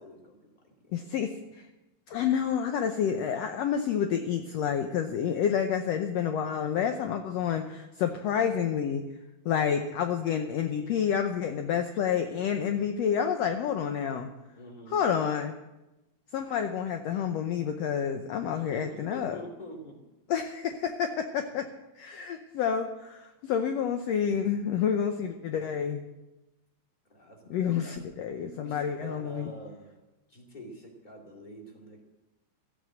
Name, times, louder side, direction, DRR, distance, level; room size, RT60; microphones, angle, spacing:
voice 1, 0.0-1.1 12.6-12.9 14.5-14.9 18.5-20.0 27.1-27.9 28.3-29.9 30.3-32.0, equal, 15° left, 0 dB, 2.5 m, -46 dB
voice 2, 0.9-1.7 2.1-9.0 9.4-14.3 14.9-15.5 16.3-19.4 20.3-21.7 21.9-26.0 27.5-29.5, left 8 dB, 70° left, 6 dB, 1.8 m, -29 dB
15.0 x 8.4 x 7.7 m, 1.0 s
omnidirectional pair, 3.4 m